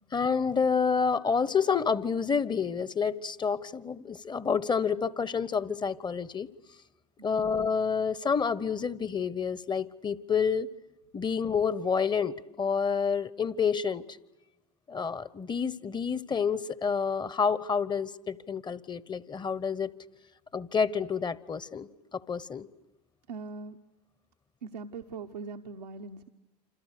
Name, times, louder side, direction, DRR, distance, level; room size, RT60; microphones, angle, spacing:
voice 1, 0.1-6.5 7.2-10.7 11.1-14.2 14.9-19.9 20.5-22.7, left 6 dB, 20° left, 19 dB, 1.0 m, -29 dB
voice 2, 23.3-23.8 24.6-26.3, right 4 dB, 85° right, 4 dB, 1.0 m, -41 dB
28.5 x 26.5 x 6.7 m, 1.0 s
hypercardioid pair, 80°, 21 cm